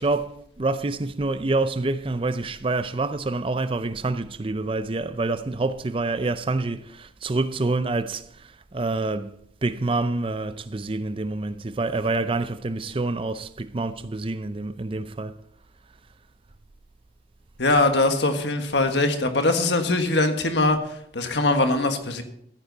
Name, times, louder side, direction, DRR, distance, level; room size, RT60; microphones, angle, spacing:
voice 1, 0.0-15.4, right 2 dB, 30° right, 0.5 m, -27 dB
voice 2, 17.6-20.8 21.1-22.2, left 2 dB, 75° left, 1.5 m, -21 dB
15.0 x 9.8 x 4.0 m
head